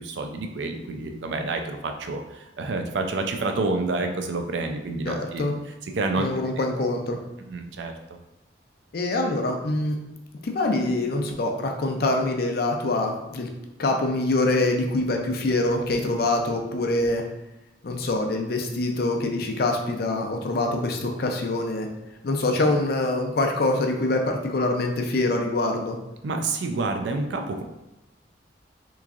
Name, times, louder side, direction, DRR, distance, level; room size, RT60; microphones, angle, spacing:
voice 1, 0.0-5.5 5.9-6.3 6.6-6.7 7.5-7.9 26.2-27.6, right 3 dB, 75° right, 5 dB, 0.4 m, -28 dB
voice 2, 5.1-5.5 6.2-7.2 8.9-10.0 10.4-13.5 13.8-17.2 17.8-21.9 22.2-26.0, left 2 dB, 55° left, 3 dB, 0.5 m, -25 dB
3.5 x 3.1 x 2.4 m, 0.92 s
head